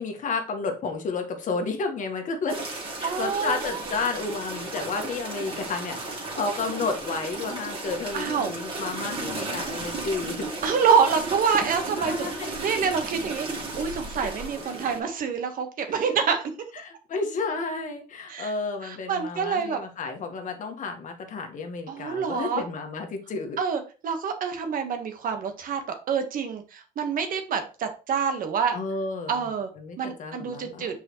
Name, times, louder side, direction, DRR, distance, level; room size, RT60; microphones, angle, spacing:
voice 1, 0.0-2.6 3.0-10.5 11.9-12.5 13.8-13.9 14.2-14.3 16.8-23.6 28.7-29.4 29.8-30.9, left 4 dB, 50° left, 4 dB, 1.5 m, -31 dB
sound 1, 2.5-15.0, right 2 dB, 35° right, 2.4 m, -34 dB
voice 2, 3.0-4.0 8.1-8.5 10.6-16.5 18.3-18.5 18.8-19.8 21.9-22.6 23.6-28.8 29.3-29.7 30.0-31.0, right 6 dB, 55° right, 6 dB, 1.4 m, -27 dB
6.5 x 4.9 x 3.1 m, 0.33 s
cardioid pair, 110°, 17 cm